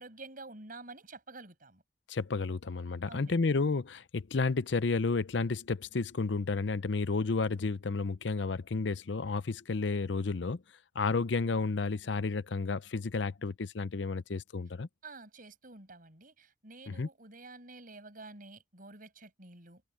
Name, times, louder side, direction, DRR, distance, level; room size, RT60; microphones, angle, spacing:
voice 1, 0.0-1.8 3.1-3.4 15.0-19.8, right 3 dB, 50° right, 6.3 m, -49 dB
voice 2, 2.1-10.6 10.9-14.9 16.9-17.1, left 4 dB, 70° left, 0.6 m, -31 dB
head